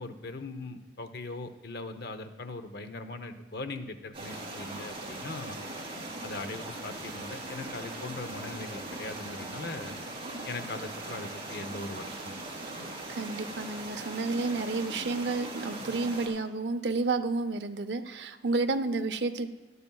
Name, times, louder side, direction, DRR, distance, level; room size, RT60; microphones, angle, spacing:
voice 1, 0.0-5.6 6.2-9.9 10.5-12.4, left 2 dB, 60° left, 8 dB, 0.8 m, -40 dB
sound 1, 4.1-16.3, right 2 dB, 30° right, 3.0 m, -40 dB
voice 2, 13.1-19.5, right 3 dB, 75° right, 10 dB, 0.7 m, -31 dB
18.0 x 12.0 x 2.3 m, 1.3 s
head